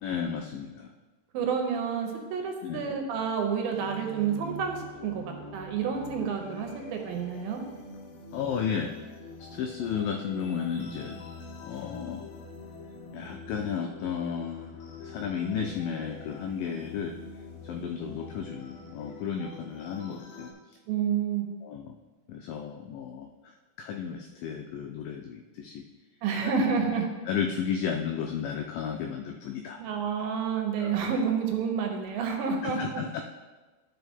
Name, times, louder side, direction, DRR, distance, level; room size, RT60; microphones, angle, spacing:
voice 1, 0.0-0.9 2.6-2.8 8.3-8.9 9.4-11.2 11.6-12.3 13.1-14.8 15.0-17.2 17.6-20.5 21.6-21.9 22.3-25.8 26.4-26.6 27.3-29.8 30.8-30.9 32.6-33.2, left 7 dB, 85° left, 4 dB, 1.9 m, -33 dB
voice 2, 1.3-7.6 20.9-21.5 26.2-27.1 29.8-33.0, right 6 dB, 75° right, 3 dB, 2.5 m, -29 dB
sound 1, 3.7-20.5, left 2 dB, 70° left, 2.4 m, -45 dB
12.5 x 4.7 x 3.5 m, 1.2 s
omnidirectional pair, 4.5 m